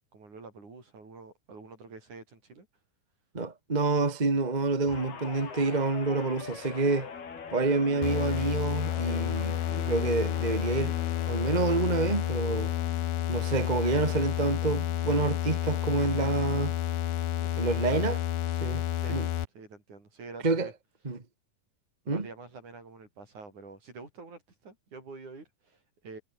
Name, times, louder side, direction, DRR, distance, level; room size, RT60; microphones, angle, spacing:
voice 1, 0.0-2.7 17.4-18.1 18.9-19.2 19.5-20.7 22.0-26.2, right 3 dB, 50° right, 8.2 m, -47 dB
voice 2, 3.3-7.1 7.5-10.9 11.3-12.7 13.3-16.7 17.6-18.2 18.6-18.8 19.1-19.3 20.4-20.7 21.0-21.2 22.1-22.3, right 3 dB, 25° right, 1.0 m, -28 dB
Guitar, 4.9-13.5 13.9-14.2, left 6 dB, 85° left, 6.6 m, -43 dB
sound 1, 8.0-19.4, left 11 dB, 65° left, 3.1 m, -30 dB
omnidirectional pair, 4.3 m